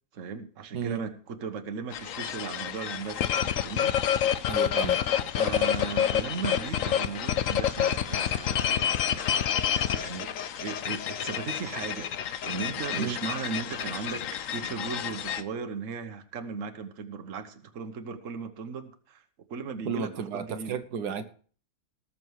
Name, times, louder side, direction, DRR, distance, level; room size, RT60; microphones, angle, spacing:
voice 1, 0.1-4.3 5.4-9.5 9.9-10.3 10.6-19.2 19.5-20.8, right 5 dB, 55° right, 8 dB, 1.5 m, -37 dB
sound 1, 1.9-15.4, left 9 dB, 65° left, 1.0 m, -28 dB
voice 2, 4.5-5.0 13.0-13.2 19.8-21.3, right 6 dB, 85° right, 8 dB, 1.6 m, -33 dB
18.5 x 7.0 x 4.7 m, 0.43 s
omnidirectional pair, 1.7 m